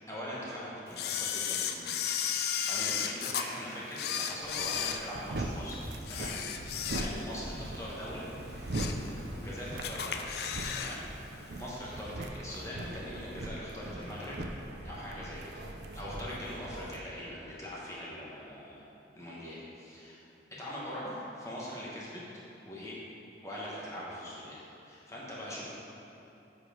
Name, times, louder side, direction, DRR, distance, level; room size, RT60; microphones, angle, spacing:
voice 1, 0.1-2.1 2.4-8.3 9.3-10.3 10.7-14.4 14.8-15.4 15.9-18.8 19.1-20.2 20.5-22.2 22.7-23.0 23.4-25.6, equal, 15° left, -7 dB, 1.2 m, -42 dB
Camera, 1.0-3.5 3.9-5.6 6.0-7.4 7.8-7.9 8.4-9.1 9.4-9.5 9.8-11.0 11.2-11.3, left 8 dB, 55° left, 0.4 m, -34 dB
sound 1, 4.4-17.0, right 1 dB, 60° right, 0.6 m, -40 dB
7.8 x 5.6 x 5.0 m, 2.9 s
head